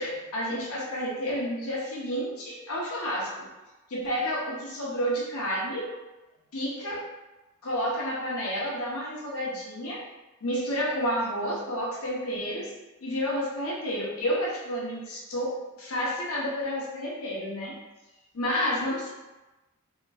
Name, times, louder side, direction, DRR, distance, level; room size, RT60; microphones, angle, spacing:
voice 1, 0.0-3.5 3.9-5.9 6.5-7.1 7.6-10.0 10.4-12.8 13.0-17.8 18.3-19.1, equal, 75° left, -4 dB, 0.7 m, -30 dB
2.8 x 2.5 x 2.2 m, 1.1 s
head